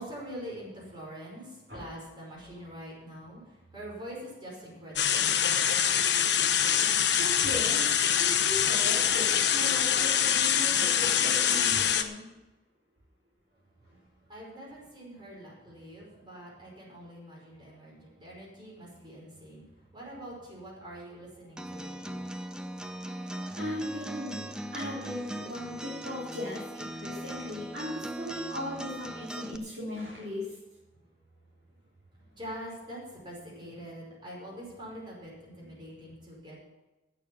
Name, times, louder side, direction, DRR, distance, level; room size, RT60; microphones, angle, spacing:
voice 1, 0.0-5.4 13.5-22.3 32.1-36.6, equal, 25° right, -4 dB, 5.4 m, -44 dB
sound 1, 5.0-12.0, left 9 dB, 65° left, 0.9 m, -25 dB
voice 2, 7.1-12.3 23.5-30.6, left 1 dB, 60° right, -6 dB, 3.5 m, -38 dB
Acoustic guitar, 21.6-29.6, right 1 dB, 5° right, 0.6 m, -39 dB
16.0 x 6.7 x 7.1 m, 1.0 s
head